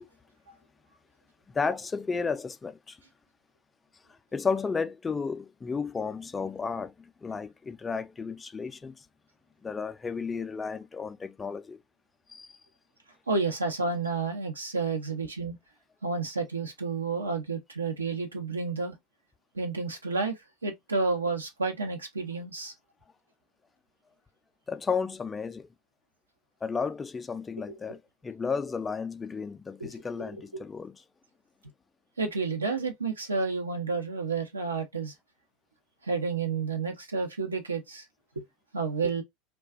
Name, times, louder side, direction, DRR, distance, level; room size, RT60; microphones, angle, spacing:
voice 1, 1.5-3.0 4.3-9.0 9.6-11.8 12.3-12.6 24.7-25.7 26.6-31.0, left 5 dB, 20° left, 0.3 m, -33 dB
voice 2, 13.3-15.6 16.0-18.9 19.5-20.4 20.6-22.7 27.7-27.8 29.8-29.9 30.5-30.6 32.2-35.1 36.0-38.0 38.7-39.2, right 4 dB, 85° right, 0.6 m, -30 dB
2.3 x 2.3 x 2.3 m
figure-of-eight pair, 80°, 0 cm